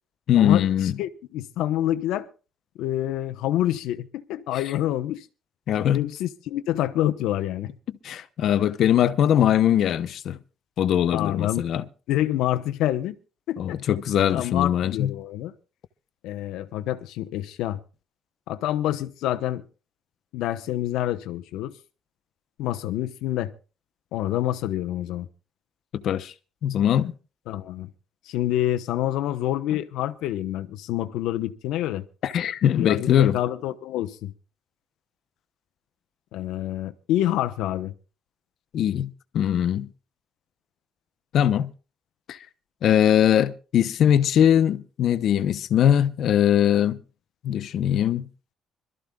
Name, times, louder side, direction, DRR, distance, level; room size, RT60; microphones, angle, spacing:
voice 1, 0.3-0.9 5.7-6.0 8.0-10.4 10.8-11.8 13.6-15.1 25.9-26.3 26.6-27.1 32.2-33.4 38.7-39.1 39.3-39.9 41.3-41.7 42.3-42.4 42.8-47.0 47.4-48.3, left 10 dB, 60° left, 0.8 m, -21 dB
voice 2, 1.0-2.2 2.8-5.2 5.9-7.7 11.1-11.6 12.1-13.2 13.5-13.8 14.3-15.5 16.2-17.8 18.5-19.6 20.3-21.7 22.6-23.5 24.1-25.3 27.5-27.9 28.3-32.0 32.8-34.3 36.3-37.9, left 13 dB, 90° left, 1.0 m, -27 dB
25.5 x 13.5 x 2.4 m
cardioid pair, 125°, 0 cm